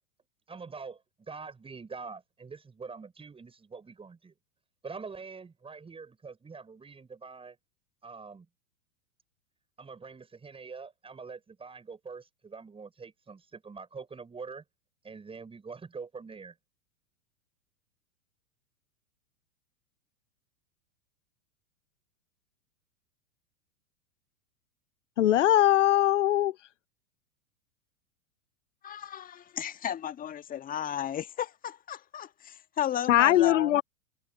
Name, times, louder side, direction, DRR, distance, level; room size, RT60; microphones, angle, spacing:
voice 1, 0.5-4.3 4.8-7.6 8.0-8.5 9.8-14.6 15.0-16.5, right 5 dB, 15° right, 6.5 m, -44 dB
voice 2, 25.2-26.5 33.1-33.8, left 13 dB, 65° left, 0.9 m, -21 dB
voice 3, 28.8-33.8, left 10 dB, 20° left, 1.6 m, -34 dB
figure-of-eight pair, 95°, 39 cm